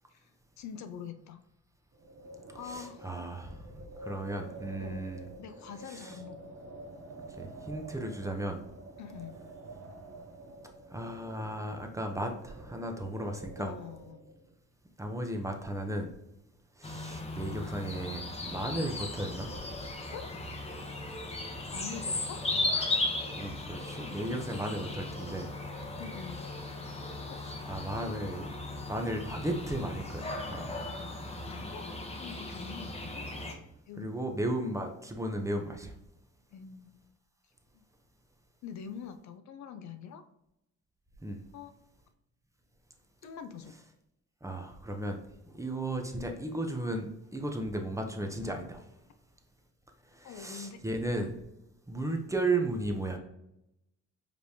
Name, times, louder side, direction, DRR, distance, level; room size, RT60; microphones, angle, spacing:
voice 1, 0.6-1.4 2.5-3.1 4.8-5.1 5.4-6.5 9.0-9.4 13.6-14.2 20.1-20.3 21.7-22.4 26.0-26.5 27.3-27.4 31.4-33.3 33.9-34.1 36.5-37.0 37.7-37.8 38.6-40.2 41.5-41.7 43.2-43.7 50.2-50.8, left 7 dB, 65° left, 9 dB, 0.5 m, -44 dB
Wind, 1.9-14.5, right 2 dB, 50° right, 0.8 m, -49 dB
voice 2, 2.6-3.6 4.0-5.3 5.9-6.2 7.4-8.6 10.9-13.7 15.0-16.1 16.8-19.5 23.3-25.5 27.7-28.5 28.9-30.7 34.0-35.9 41.2-41.4 44.4-45.2 45.5-48.8 50.1-51.3 51.9-53.2, right 1 dB, 10° right, 4 dB, 0.7 m, -35 dB
sound 1, 16.8-33.5, left 2 dB, 20° left, 0.8 m, -37 dB
5.1 x 3.2 x 2.8 m, 0.83 s
cardioid pair, 90°, 30 cm